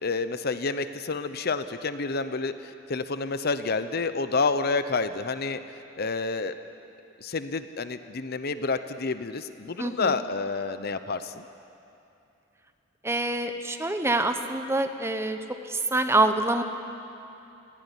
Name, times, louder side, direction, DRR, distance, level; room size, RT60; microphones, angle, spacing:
voice 1, 0.0-5.6 6.0-6.6 7.2-11.4, left 4 dB, 50° left, 11 dB, 0.8 m, -29 dB
voice 2, 9.8-10.1 13.0-15.4 15.7-16.6, right 2 dB, 15° right, 7 dB, 1.0 m, -25 dB
19.0 x 16.0 x 10.0 m, 2.8 s
head